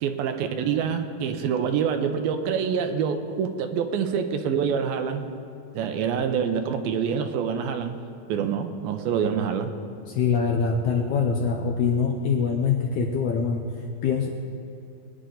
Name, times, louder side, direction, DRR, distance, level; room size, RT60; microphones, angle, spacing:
voice 1, 0.0-5.3 5.7-8.0 8.3-9.7, right 7 dB, 85° right, 7 dB, 2.6 m, -26 dB
voice 2, 10.1-13.6 14.0-14.3, left 6 dB, 75° left, 2 dB, 1.8 m, -24 dB
21.5 x 9.7 x 3.9 m, 2.7 s
omnidirectional pair, 4.2 m